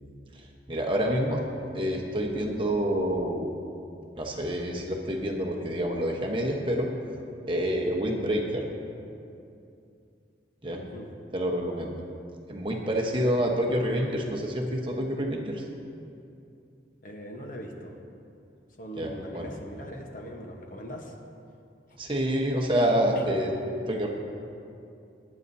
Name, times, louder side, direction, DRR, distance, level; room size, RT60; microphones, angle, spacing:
voice 1, 0.3-1.4 1.7-3.5 4.1-6.9 7.5-8.6 10.6-10.8 11.3-11.9 12.5-15.6 19.0-19.5 22.0-23.5 23.9-24.1, equal, 30° right, 0 dB, 1.1 m, -27 dB
voice 2, 10.7-11.1 17.0-18.0 18.8-21.1 23.1-23.3, equal, 45° left, 2 dB, 1.0 m, -40 dB
19.5 x 9.8 x 2.8 m, 2.6 s
head